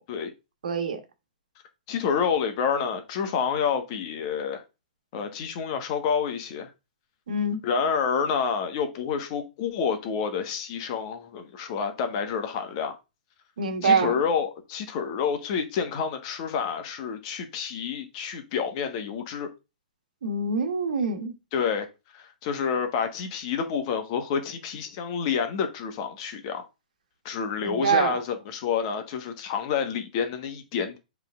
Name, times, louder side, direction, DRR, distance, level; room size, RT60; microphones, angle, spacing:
voice 1, 0.6-1.0 7.3-7.6 13.6-14.2 20.2-21.3 27.6-28.2, right 4 dB, 65° right, 1.5 m, -25 dB
voice 2, 1.9-4.6 5.1-6.7 7.6-13.0 13.8-19.5 21.5-21.9 22.1-26.6 27.2-31.0, left 6 dB, 40° left, 1.3 m, -28 dB
7.4 x 3.6 x 3.6 m
figure-of-eight pair, 120°, 5 cm